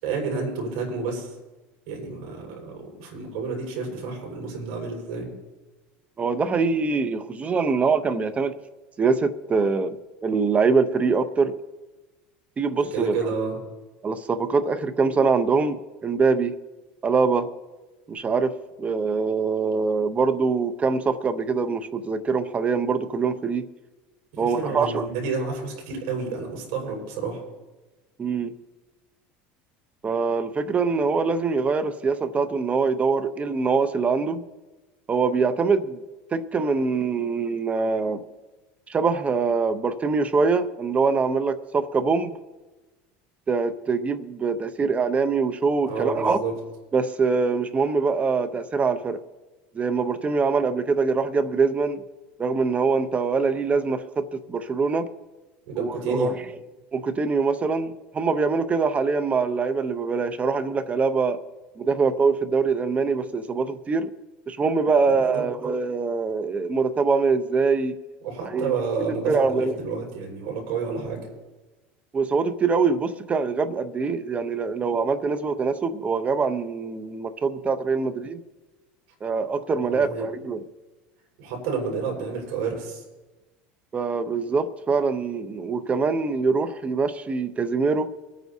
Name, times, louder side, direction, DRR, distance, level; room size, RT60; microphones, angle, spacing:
voice 1, 0.0-1.3 1.9-5.3 12.9-13.6 24.3-27.4 45.9-46.5 55.6-56.3 65.3-65.4 68.2-71.3 79.9-80.3 81.4-83.0, right 4 dB, 75° right, 0 dB, 5.2 m, -30 dB
voice 2, 6.2-8.5 9.0-11.5 12.6-13.3 14.0-16.5 17.0-17.5 18.1-18.5 18.8-23.7 24.4-25.1 28.2-28.5 30.0-34.5 35.1-36.0 36.3-38.2 38.9-42.4 43.5-46.4 46.9-49.2 49.7-52.0 52.4-55.1 55.8-56.4 56.9-61.4 61.8-64.1 64.5-67.9 68.5-68.7 69.3-69.8 72.1-78.4 79.2-80.6 83.9-88.1, right 4 dB, 25° right, 11 dB, 0.8 m, -24 dB
24.5 x 9.3 x 2.8 m, 1.2 s
supercardioid pair, 105°, 5 cm